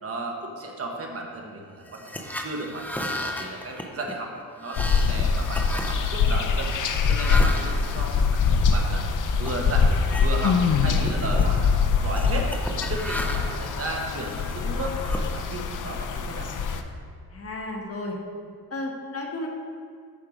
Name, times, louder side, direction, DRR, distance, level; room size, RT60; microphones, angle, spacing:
voice 1, 0.0-4.3 4.6-6.7 7.0-9.0 9.4-9.9 10.2-12.5 12.9-16.5, right 2 dB, 40° right, 1 dB, 1.2 m, -34 dB
sound 1, 1.9-8.9 9.4-9.6 10.0-10.6 10.9-11.5 12.1-13.7 14.2-15.8, left 1 dB, 5° left, 0.5 m, -35 dB
sound 2, 4.8-16.8, left 5 dB, 55° left, 0.7 m, -24 dB
voice 2, 17.3-18.2 18.7-19.5, left 2 dB, 40° left, 1 dB, 1.2 m, -33 dB
13.0 x 4.6 x 5.0 m, 2.1 s
cardioid pair, 145°, 38 cm